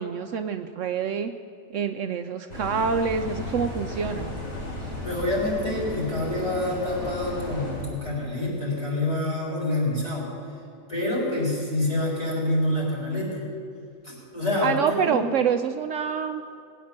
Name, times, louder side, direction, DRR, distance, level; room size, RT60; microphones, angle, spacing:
voice 1, 0.0-1.3 1.7-4.3 14.6-16.4, right 6 dB, 70° right, 8 dB, 0.9 m, -26 dB
sound 1, 2.5-8.0, left 1 dB, 55° left, 4.6 m, -35 dB
voice 2, 5.0-10.3 10.9-13.5 14.0-15.2, left 1 dB, 20° left, -5 dB, 4.7 m, -27 dB
20.0 x 9.4 x 7.3 m, 2.6 s
omnidirectional pair, 1.4 m